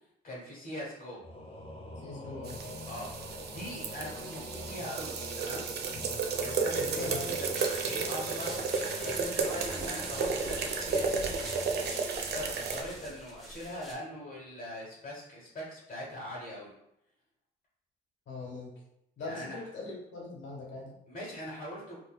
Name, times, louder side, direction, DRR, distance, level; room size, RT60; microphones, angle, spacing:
voice 1, 0.2-1.2 2.9-5.6 6.4-11.4 12.1-16.7 19.2-19.6 21.1-22.0, left 1 dB, 45° left, -5 dB, 1.1 m, -42 dB
Singing / Musical instrument, 1.2-13.8, equal, 25° left, 0.6 m, -44 dB
voice 2, 1.9-2.6 5.9-6.0 6.7-7.4 18.3-18.7 19.2-20.9, left 3 dB, 70° left, -3 dB, 1.3 m, -41 dB
sound 1, 2.4-12.8, right 5 dB, 55° right, 0.5 m, -33 dB
sound 2, 6.7-13.9, right 1 dB, ahead, 1.0 m, -46 dB
4.0 x 2.4 x 2.3 m, 0.79 s
cardioid pair, 90°, 20 cm